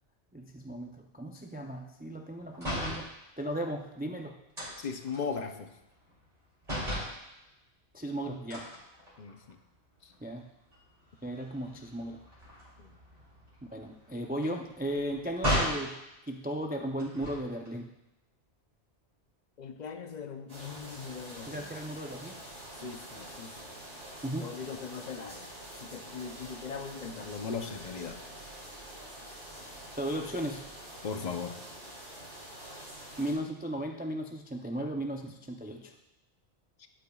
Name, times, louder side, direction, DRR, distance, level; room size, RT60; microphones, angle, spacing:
voice 1, 0.3-4.4 7.9-8.7 10.2-10.5 11.2-12.2 13.7-15.9 16.3-17.9 21.5-22.4 24.2-24.6 30.0-30.7 33.2-35.9, right 1 dB, 15° right, 2 dB, 0.3 m, -36 dB
sound 1, 2.5-3.1 4.6-6.4 6.6-7.2 8.5-9.5 10.0-10.2 10.5-15.9 17.0-17.7, equal, 35° right, 3.2 m, -36 dB
voice 2, 4.8-5.7 9.2-9.6 10.0-10.1 12.8-12.9 19.6-21.7 22.8-23.7 24.4-25.5 25.8-28.2 31.0-31.6 36.8-36.9, left 5 dB, 45° left, 6 dB, 0.7 m, -39 dB
sound 2, 20.5-33.3, right 1 dB, 85° right, 3.1 m, -46 dB
12.0 x 8.7 x 2.3 m, 0.92 s
omnidirectional pair, 1.1 m